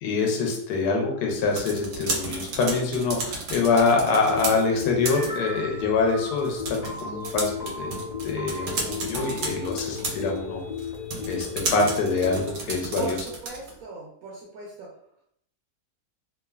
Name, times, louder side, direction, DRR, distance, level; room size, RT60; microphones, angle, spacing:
voice 1, 0.0-7.9 8.2-10.6 11.3-13.2, left 4 dB, 75° left, 1 dB, 1.1 m, -25 dB
sound 1, 1.3-13.8, right 3 dB, 90° right, 1.3 m, -34 dB
sound 2, 4.3-12.4, left 5 dB, 40° left, 0.4 m, -35 dB
voice 2, 13.0-14.9, right 2 dB, 70° right, -3 dB, 0.9 m, -38 dB
3.0 x 2.1 x 2.2 m, 0.68 s
omnidirectional pair, 1.8 m